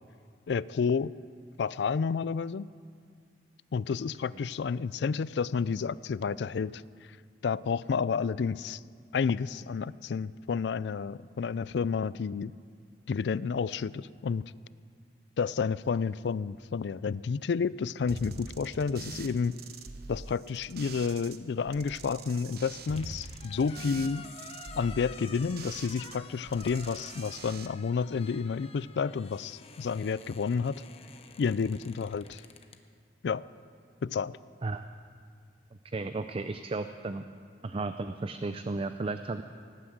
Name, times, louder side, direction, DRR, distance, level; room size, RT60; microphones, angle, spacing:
voice 1, 0.5-1.1 1.6-2.7 3.7-6.8 7.4-8.8 9.1-12.5 13.1-14.4 15.4-19.5 20.1-24.3 24.8-30.8 31.4-32.4 33.2-33.4 34.0-34.4, left 5 dB, 70° left, 19 dB, 0.4 m, -30 dB
sound 1, 18.1-21.4 21.7-26.2 26.5-27.7, right 4 dB, 60° right, 1.0 m, -44 dB
sound 2, 22.5-32.8, left 5 dB, 35° left, 0.9 m, -50 dB
voice 2, 35.9-37.2 37.6-39.4, right 3 dB, 35° right, 9 dB, 0.5 m, -34 dB
18.5 x 9.6 x 7.9 m, 2.1 s
head